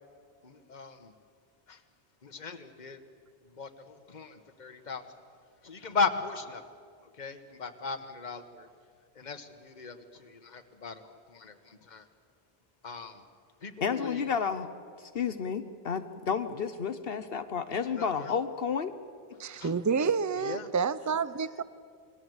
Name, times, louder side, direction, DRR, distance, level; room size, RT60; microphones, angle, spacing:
voice 1, 0.4-1.1 1.7-1.8 2.2-3.0 3.5-5.0 5.6-6.6 7.2-8.7 9.1-12.1 12.8-13.2 13.6-14.3 17.9-18.3 19.6-19.8 20.4-20.7, left 4 dB, 45° left, 1.5 m, -37 dB
voice 2, 13.8-14.7 15.1-18.9, left 6 dB, 70° left, 1.1 m, -31 dB
voice 3, 19.4-21.6, right 5 dB, 20° right, 0.5 m, -29 dB
28.5 x 21.5 x 8.0 m
omnidirectional pair, 1.0 m